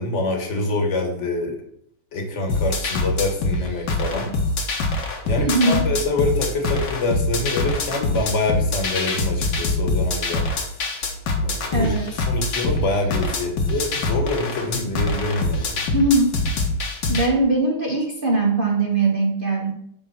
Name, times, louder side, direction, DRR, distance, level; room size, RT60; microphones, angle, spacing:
voice 1, 0.0-1.6 2.1-4.3 5.2-10.5 11.4-11.9 12.3-15.8, left 2 dB, 35° left, 3 dB, 1.5 m, -25 dB
sound 1, 2.5-17.3, left 2 dB, 60° left, 1.8 m, -24 dB
voice 2, 5.4-5.8 11.7-12.2 15.9-16.3 17.1-19.7, right 2 dB, 75° right, 1 dB, 0.4 m, -20 dB
9.6 x 3.7 x 5.8 m, 0.74 s
omnidirectional pair, 2.3 m